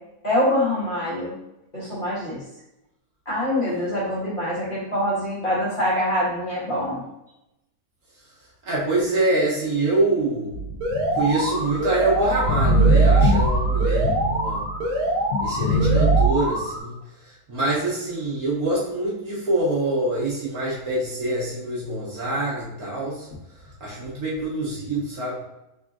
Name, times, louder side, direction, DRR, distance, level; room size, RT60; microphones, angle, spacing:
voice 1, 0.2-1.3 1.7-2.4 3.2-7.0, left 1 dB, 35° left, -9 dB, 1.7 m, -24 dB
voice 2, 8.7-10.6 11.1-14.6 15.4-17.0 17.5-23.3 23.8-25.4, right 2 dB, 65° right, -7 dB, 1.9 m, -25 dB
sound 1, 10.5-14.8 15.3-16.3, right 2 dB, 70° left, 0.9 m, -21 dB
Alarm, 10.8-16.8, right 1 dB, 85° right, 1.5 m, -26 dB
4.1 x 3.4 x 2.5 m, 0.87 s
omnidirectional pair, 1.6 m